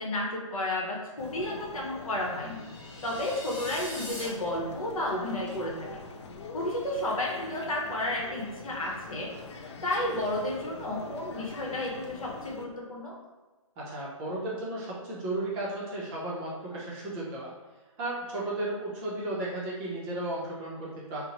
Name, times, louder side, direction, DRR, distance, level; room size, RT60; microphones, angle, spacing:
voice 1, 0.0-2.6 3.0-6.1 6.5-13.1, left 1 dB, 80° left, -2 dB, 0.8 m, -32 dB
sound 1, 1.2-12.7, left 3 dB, 55° left, 0.4 m, -44 dB
sound 2, 2.2-4.3, left 1 dB, 35° left, 1.0 m, -42 dB
voice 2, 13.8-17.5 18.0-21.3, right 1 dB, 20° right, -5 dB, 0.6 m, -34 dB
2.6 x 2.1 x 2.9 m, 1.2 s
hypercardioid pair, 145°, 18 cm